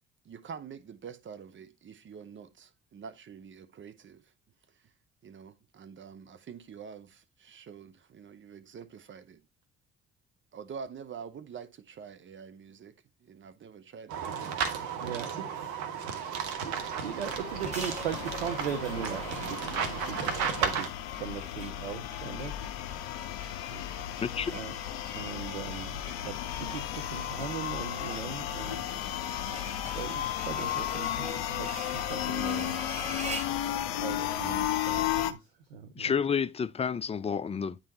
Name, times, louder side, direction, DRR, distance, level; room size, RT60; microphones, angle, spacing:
voice 1, 0.2-4.2 4.8-4.9 5.2-9.5 10.5-12.9 13.2-14.6 15.2-15.5 23.7-24.1, right 6 dB, 40° right, 0.9 m, -46 dB
sound 1, 14.1-20.9, right 7 dB, 70° right, 1.1 m, -34 dB
sound 2, 16.6-35.3, left 12 dB, 80° left, 0.6 m, -34 dB
voice 2, 17.0-20.9 21.2-22.5 24.5-24.7 25.1-26.0 26.2-26.3 26.7-26.8 27.1-28.8 30.0-31.7 31.9-32.8 34.0-35.4 35.7-35.8, right 7 dB, 90° right, 0.6 m, -38 dB
sound 3, 17.6-33.6, right 1 dB, 20° right, 2.4 m, -45 dB
voice 3, 24.2-24.5 36.0-37.8, left 6 dB, 20° left, 0.4 m, -30 dB
8.8 x 3.9 x 4.1 m
hypercardioid pair, 50°, 30 cm